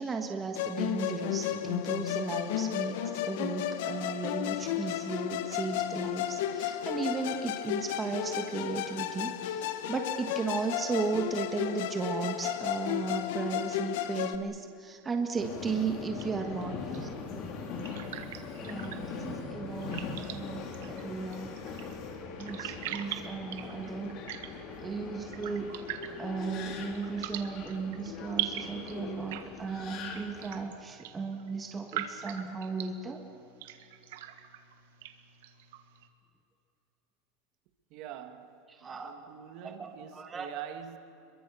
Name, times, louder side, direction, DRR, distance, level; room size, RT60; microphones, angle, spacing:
voice 1, 0.0-17.1 18.6-21.7 22.4-24.2 24.8-25.8 26.2-33.2 38.8-39.1 39.6-40.6, right 4 dB, 15° right, 1.4 m, -35 dB
Musical instrument, 0.5-14.4, left 11 dB, 70° left, 1.2 m, -33 dB
Subway metro underground, 15.4-30.6, left 5 dB, 40° left, 3.4 m, -41 dB
sound 1, 16.2-36.1, right 11 dB, 80° right, 1.7 m, -43 dB
voice 2, 37.9-41.0, right 10 dB, 45° right, 1.7 m, -45 dB
27.5 x 23.0 x 7.0 m
supercardioid pair, 160°, 0 cm